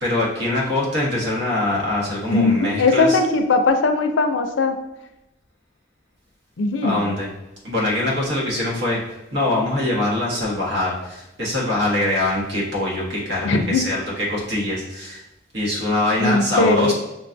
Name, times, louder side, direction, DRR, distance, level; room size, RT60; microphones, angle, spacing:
voice 1, 0.0-3.2 6.8-7.3 7.6-9.0 9.3-15.2 15.5-16.9, left 1 dB, 70° right, -4 dB, 1.2 m, -23 dB
voice 2, 2.3-4.8 6.6-7.0 13.4-13.9 16.2-16.9, left 3 dB, 90° left, 7 dB, 0.4 m, -19 dB
5.8 x 2.3 x 2.6 m, 0.93 s
head